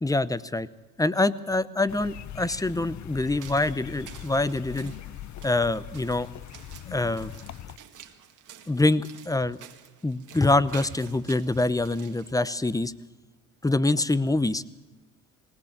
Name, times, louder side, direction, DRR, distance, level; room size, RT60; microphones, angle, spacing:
voice 1, 0.0-0.7 1.0-4.9 5.4-6.3 6.9-7.3 8.7-9.6 10.0-12.9 13.6-14.6, left 2 dB, 10° left, 17 dB, 0.7 m, -25 dB
sound 1, 1.9-7.8, left 12 dB, 50° left, 0.7 m, -41 dB
sound 2, 3.2-12.3, right 9 dB, 55° right, 2.0 m, -50 dB
19.0 x 18.5 x 7.3 m, 1.2 s
supercardioid pair, 75°, 36 cm